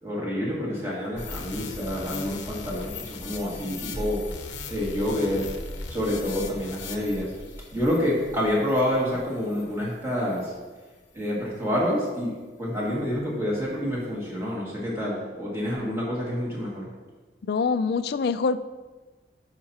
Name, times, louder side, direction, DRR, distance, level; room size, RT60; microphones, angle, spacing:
voice 1, 0.0-4.2 4.7-5.5 5.9-7.3 7.7-10.5 11.1-16.9, left 1 dB, 15° right, -6 dB, 2.0 m, -28 dB
sound 1, 1.2-9.8 10.3-10.5, left 3 dB, 75° left, 0.9 m, -38 dB
voice 2, 17.5-18.6, left 5 dB, 55° left, 12 dB, 0.3 m, -24 dB
11.0 x 5.9 x 2.9 m, 1.3 s
head